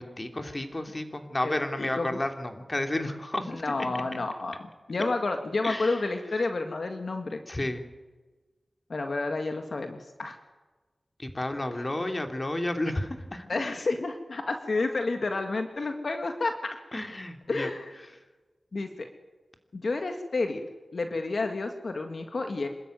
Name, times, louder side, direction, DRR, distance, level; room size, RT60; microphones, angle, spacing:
voice 1, 0.0-3.6 5.6-6.0 7.5-7.8 11.2-13.5 16.9-17.7, left 1 dB, 35° left, 5 dB, 2.8 m, -31 dB
voice 2, 1.4-2.2 3.5-4.6 4.9-7.4 8.9-10.4 13.5-16.8 17.5-17.9 18.7-19.1 19.7-20.6 20.9-22.7, left 3 dB, 70° left, 5 dB, 1.8 m, -30 dB
26.5 x 13.5 x 9.3 m, 1.2 s
cardioid pair, 50°, 0 cm